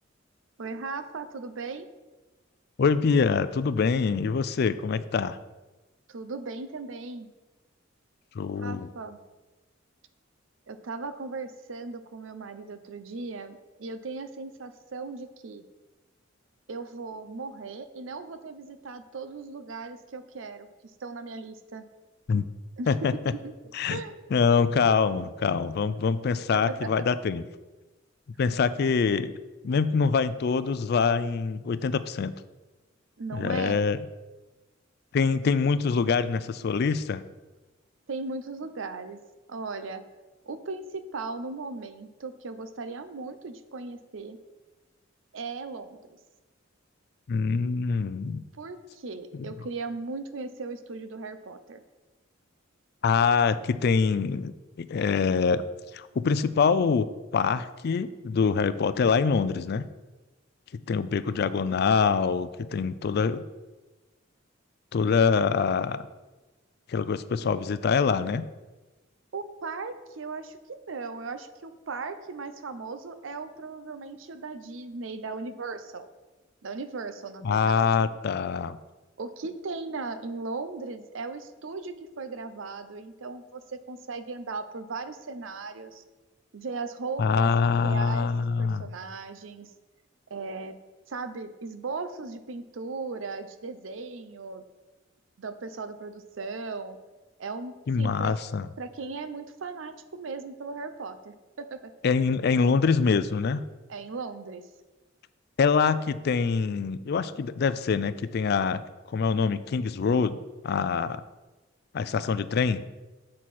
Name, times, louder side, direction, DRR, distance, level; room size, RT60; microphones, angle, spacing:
voice 1, 0.6-1.9 6.1-7.3 8.6-9.2 10.7-15.6 16.7-20.7 21.0-21.8 22.8-22.9 23.4-24.2 26.5-26.9 33.2-33.9 38.1-39.2 39.5-40.0 40.4-44.4 45.3-46.0 48.6-51.8 69.3-76.1 76.6-78.1 79.2-86.0 86.5-87.5 87.8-89.7 90.3-90.8 91.1-94.6 95.4-97.0 97.4-98.3 98.8-101.8 103.9-104.7, right 4 dB, 75° right, 11 dB, 0.6 m, -37 dB
voice 2, 2.8-5.4 8.3-8.9 22.3-22.5 22.9-23.1 23.7-24.0 24.3-27.4 28.4-29.3 29.6-32.3 33.3-34.0 35.1-37.2 47.3-48.4 49.3-49.5 53.0-54.5 54.8-55.6 55.9-57.1 57.3-59.9 60.9-63.4 64.9-66.1 66.9-68.5 77.4-78.8 87.2-88.9 97.9-98.7 102.0-103.6 105.6-108.8 109.1-110.4 110.6-111.2 111.9-112.8, left 5 dB, 55° left, 14 dB, 0.4 m, -25 dB
7.4 x 6.4 x 4.2 m, 1.2 s
head